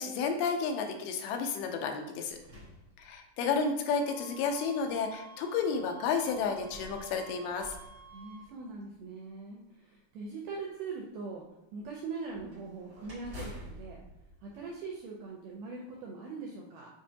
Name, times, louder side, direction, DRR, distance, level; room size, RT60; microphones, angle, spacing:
voice 1, 0.0-2.4 3.0-7.8, left 5 dB, 85° left, 4 dB, 2.5 m, -31 dB
sound 1, 1.7-3.6 4.4-4.5 6.3-8.9 12.3-15.4, equal, 65° right, 0.8 m, -50 dB
sound 2, 3.9-8.5, right 5 dB, 60° left, 2.0 m, -52 dB
voice 2, 8.1-11.4 11.7-14.0 14.4-16.9, right 4 dB, 80° right, -2 dB, 1.9 m, -41 dB
7.3 x 2.5 x 2.8 m, 0.97 s
omnidirectional pair, 4.3 m